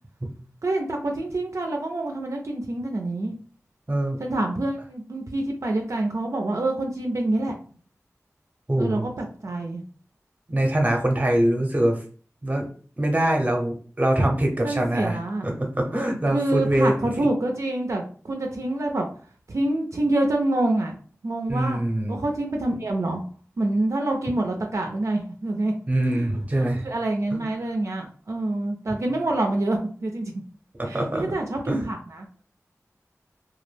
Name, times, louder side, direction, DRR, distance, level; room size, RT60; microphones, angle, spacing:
voice 1, 0.6-3.4 4.2-7.5 8.8-9.8 14.6-15.5 16.3-19.1 19.5-21.0 21.2-21.8 22.1-23.2 23.6-25.7 26.1-26.3 26.5-30.3 30.8-32.3, right 2 dB, 65° right, 2 dB, 0.4 m, -26 dB
voice 2, 3.9-4.2 8.7-9.0 10.5-12.0 12.4-12.7 13.0-17.3 21.5-22.2 25.9-26.8 27.3-27.4 30.8-31.3 31.7-31.8, right 1 dB, 25° right, 2 dB, 0.6 m, -23 dB
2.2 x 2.0 x 3.1 m, 0.43 s
wide cardioid pair, 55°, 6 cm